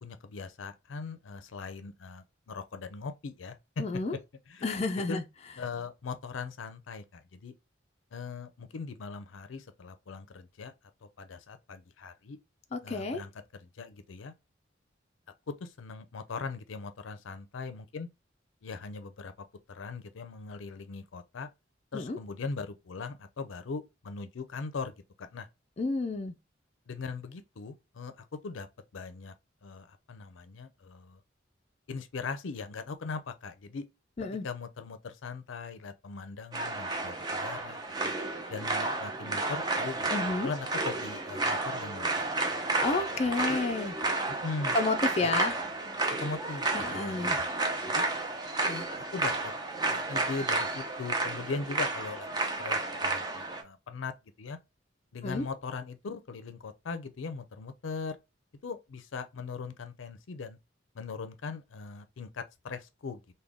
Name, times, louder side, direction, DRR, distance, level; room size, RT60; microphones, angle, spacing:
voice 1, 0.0-3.8 4.5-4.7 5.1-5.2 5.6-7.5 8.1-10.7 11.0-12.4 12.8-14.3 15.5-18.1 18.6-21.5 21.9-25.5 26.9-28.7 28.9-29.3 29.6-31.2 31.9-33.9 34.2-38.1 38.5-40.1 40.4-42.5 43.3-43.6 44.4-44.8 45.2-45.5 46.2-47.5 47.9-48.1 48.6-49.5 49.9-54.6 55.1-58.2 58.6-60.6 60.9-63.2, left 4 dB, 85° left, 0.5 m, -40 dB
voice 2, 3.8-4.2 4.6-5.2 12.7-13.2 21.9-22.2 25.8-26.3 34.2-34.4 40.1-40.5 42.8-43.9 44.7-45.5 46.7-47.4 55.2-55.5, left 3 dB, 35° left, 0.4 m, -30 dB
sound 1, 36.5-53.6, right 2 dB, 20° right, 0.6 m, -31 dB
3.6 x 2.2 x 3.3 m
head